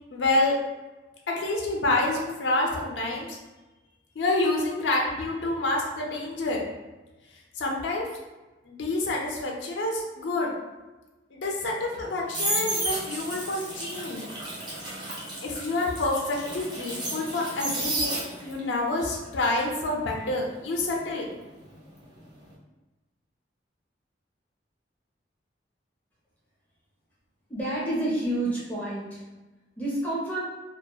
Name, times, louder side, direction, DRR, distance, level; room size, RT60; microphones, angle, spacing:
voice 1, 0.1-0.6 1.4-3.4 4.2-6.6 7.6-8.1 8.7-10.5 11.3-14.3 15.4-21.3, left 2 dB, 90° left, 0 dB, 0.4 m, -28 dB
sound 1, 11.9-18.7 19.0-21.9 22.2-22.5, right 1 dB, 25° right, 0.5 m, -33 dB
voice 2, 27.5-29.2 29.8-30.4, right 1 dB, 10° left, -7 dB, 0.7 m, -29 dB
2.7 x 2.0 x 2.2 m, 1.1 s
head